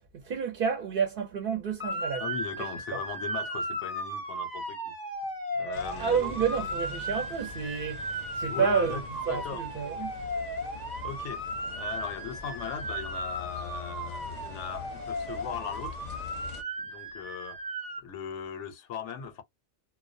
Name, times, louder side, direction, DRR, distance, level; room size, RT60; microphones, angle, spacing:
voice 1, 0.0-2.2 2.9-3.0 6.0-8.1 8.3-9.0 9.3-10.1, right 6 dB, 55° right, 0.8 m, -29 dB
Motor vehicle (road) / Siren, 1.8-18.0, right 1 dB, 20° right, 0.7 m, -36 dB
voice 2, 2.2-4.9 5.5-6.3 8.5-9.6 10.7-16.1 16.8-17.6 18.0-19.4, left 7 dB, 90° left, 0.9 m, -39 dB
sound 1, 5.7-16.6, left 5 dB, 45° left, 0.6 m, -44 dB
2.2 x 2.2 x 2.5 m
omnidirectional pair, 1.2 m